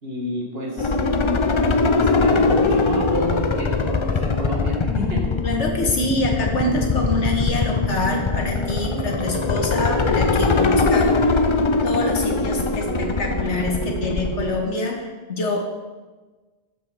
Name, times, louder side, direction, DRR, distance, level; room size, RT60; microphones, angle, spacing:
voice 1, 0.0-0.9 1.9-5.2, left 1 dB, 60° right, -2 dB, 2.3 m, -29 dB
sound 1, 0.5-14.6, right 1 dB, 35° right, 1.0 m, -34 dB
sound 2, 0.8-14.6, left 4 dB, 40° left, 0.4 m, -22 dB
voice 2, 5.4-11.4 11.8-15.7, left 2 dB, 80° left, 1 dB, 1.9 m, -25 dB
13.5 x 7.6 x 3.7 m, 1.3 s
omnidirectional pair, 1.2 m